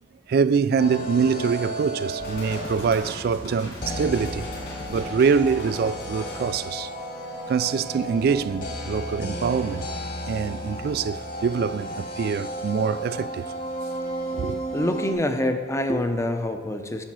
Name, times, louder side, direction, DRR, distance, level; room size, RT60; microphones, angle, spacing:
voice 1, 0.3-4.5 4.9-6.9 7.5-9.8 10.3-13.4 14.3-14.6, right 6 dB, 60° right, 0.3 m, -24 dB
sound 1, 0.8-3.1 3.8-15.1, equal, 50° left, 1.6 m, -33 dB
sound 2, 2.2-6.5, left 1 dB, 65° left, 2.9 m, -39 dB
voice 2, 14.7-17.0, left 1 dB, 15° left, 0.7 m, -25 dB
8.8 x 6.4 x 6.1 m
head